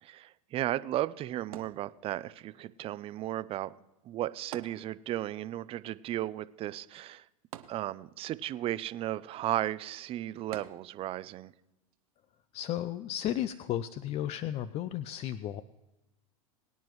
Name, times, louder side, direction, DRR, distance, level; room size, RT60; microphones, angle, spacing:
voice 1, 0.0-3.7 4.0-7.2 7.7-11.5, right 13 dB, 30° right, 16 dB, 0.5 m, -35 dB
sound 1, 1.5-2.4 4.5-5.4 5.7-5.8 7.5-8.4 10.5-11.2 11.9-12.0, right 11 dB, 85° right, 0.9 m, -47 dB
voice 2, 12.5-15.6, left 12 dB, 35° left, 14 dB, 0.4 m, -34 dB
22.5 x 9.3 x 3.1 m, 0.97 s
hypercardioid pair, 115°, 18 cm